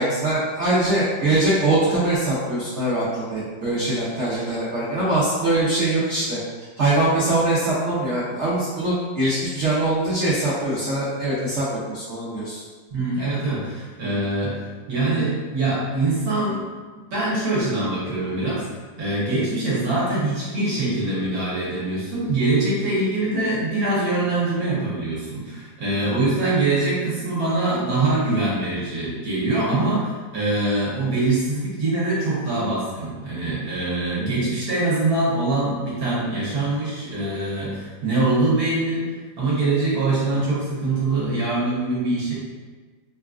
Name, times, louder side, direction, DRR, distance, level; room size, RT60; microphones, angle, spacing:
voice 1, 0.0-6.4 6.8-12.6, right 2 dB, 85° right, -8 dB, 0.6 m, -22 dB
voice 2, 12.9-16.6 17.1-18.7 19.0-39.0 39.4-42.3, right 2 dB, 60° right, -8 dB, 1.2 m, -23 dB
3.9 x 2.3 x 2.4 m, 1.4 s
omnidirectional pair, 2.1 m